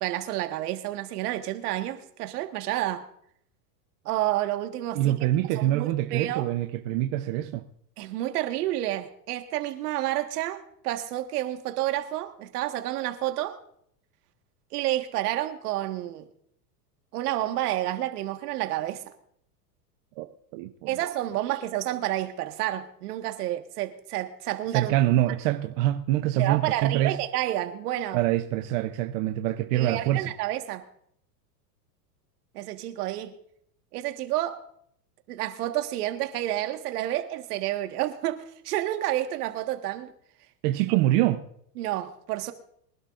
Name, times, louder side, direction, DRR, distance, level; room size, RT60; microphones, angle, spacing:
voice 1, 0.0-3.0 4.1-5.1 5.6-6.4 8.0-13.6 14.7-16.2 17.1-19.0 20.9-24.9 26.4-28.2 29.7-30.8 32.5-33.3 33.9-34.6 35.3-40.1 41.8-42.5, right 14 dB, 70° right, 1.7 m, -30 dB
voice 2, 4.9-7.6 20.2-20.3 20.5-20.9 24.7-27.2 28.1-30.3 40.6-41.4, right 14 dB, 50° right, 0.8 m, -25 dB
23.5 x 12.0 x 2.5 m
supercardioid pair, 145°, 48 cm